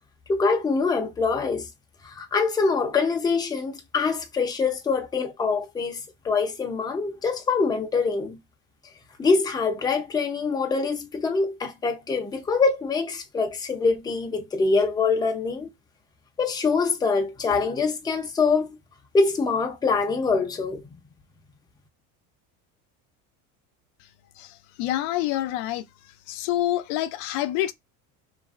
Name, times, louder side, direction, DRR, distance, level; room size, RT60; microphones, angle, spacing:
voice 1, 0.3-1.7 2.0-8.4 9.2-15.7 16.4-18.8 19.1-20.8, left 4 dB, 10° left, 0.5 m, -24 dB
voice 2, 24.4-25.8 26.3-27.7, left 14 dB, 80° left, 0.5 m, -27 dB
3.0 x 2.5 x 2.4 m
cardioid pair, 125°, 38 cm